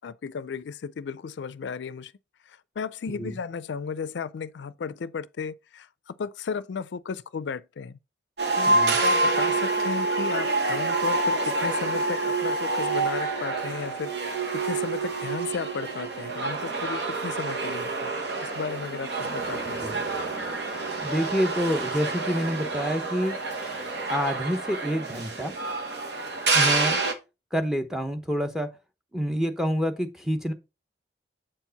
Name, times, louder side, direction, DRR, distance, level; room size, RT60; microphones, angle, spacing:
voice 1, 0.0-2.1 2.5-8.0 8.6-18.1 18.4-19.8, left 5 dB, 80° left, 0.4 m, -34 dB
voice 2, 3.1-3.4 8.7-9.0 19.7-20.0 21.0-23.4 24.1-25.5 26.5-27.0 27.5-28.7 29.1-30.5, equal, 5° right, 0.8 m, -28 dB
sound 1, 8.4-27.1, right 3 dB, 75° right, 1.4 m, -27 dB
7.6 x 4.5 x 4.0 m
head